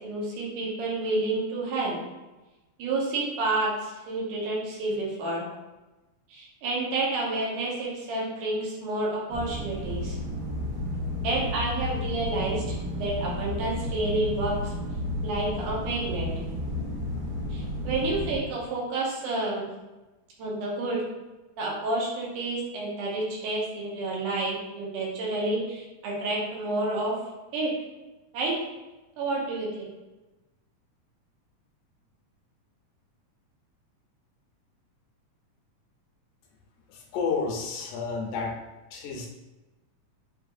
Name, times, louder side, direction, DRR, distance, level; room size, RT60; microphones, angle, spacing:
voice 1, 0.0-2.0 2.8-5.4 6.3-10.2 11.2-14.7 15.2-16.3 17.5-19.6 20.4-21.0 21.6-27.1 27.5-27.7 28.3-28.5 29.2-29.9, right 2 dB, 85° right, -4 dB, 2.6 m, -29 dB
sound 1, 9.3-18.4, left 1 dB, 60° right, 1.7 m, -32 dB
voice 2, 36.9-38.6 38.9-39.3, left 5 dB, 80° left, 0 dB, 2.2 m, -31 dB
7.1 x 3.0 x 2.5 m, 1.1 s
omnidirectional pair, 3.6 m